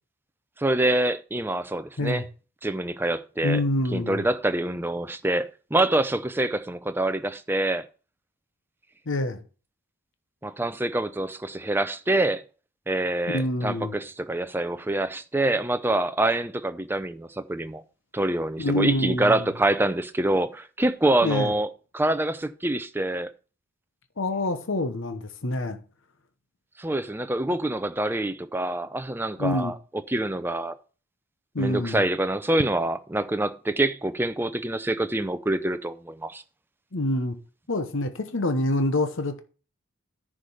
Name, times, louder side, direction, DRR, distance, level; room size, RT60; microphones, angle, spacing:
voice 1, 0.6-2.2 2.6-3.6 3.9-7.9 10.4-12.4 12.9-17.8 18.1-21.7 21.9-23.3 26.8-29.7 30.1-30.8 31.6-36.4, right 1 dB, 10° right, 0.5 m, -26 dB
voice 2, 3.4-4.3 9.1-9.4 13.3-14.0 18.6-19.5 21.2-21.5 24.2-25.8 29.4-29.7 31.5-32.1 36.9-37.4 37.7-39.4, left 1 dB, 55° left, 1.0 m, -26 dB
10.5 x 5.1 x 5.6 m
head